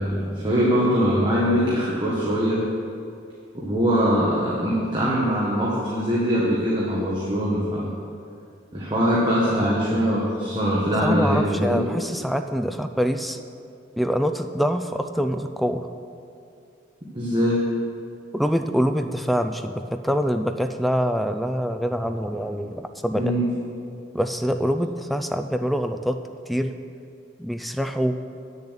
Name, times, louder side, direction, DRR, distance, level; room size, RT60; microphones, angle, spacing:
voice 1, 0.0-2.6 3.5-7.9 8.7-11.8 17.1-17.6 23.1-23.5, equal, 25° right, -6 dB, 1.4 m, -22 dB
voice 2, 11.0-13.4 14.0-15.9 18.3-23.4 24.1-26.2 26.5-26.7 27.4-28.2, equal, ahead, 7 dB, 0.4 m, -25 dB
8.5 x 6.9 x 8.1 m, 2.5 s
head